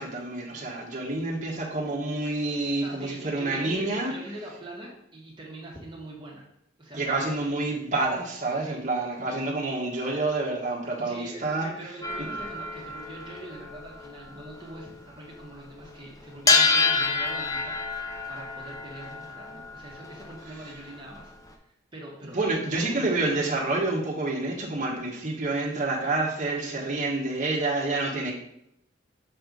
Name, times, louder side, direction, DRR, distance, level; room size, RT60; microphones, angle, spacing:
voice 1, 0.0-4.1 6.9-11.7 12.2-12.3 22.3-28.3, right 2 dB, 40° right, -3 dB, 1.4 m, -28 dB
voice 2, 2.8-6.4 6.8-7.5 8.6-8.8 11.0-17.8 18.3-21.3 21.6-23.1, right 1 dB, 25° right, -3 dB, 1.5 m, -43 dB
sound 1, 12.0-15.5 15.8-15.9 16.4-21.5, left 4 dB, 15° left, 0.6 m, -28 dB
7.0 x 3.3 x 5.3 m, 0.77 s
head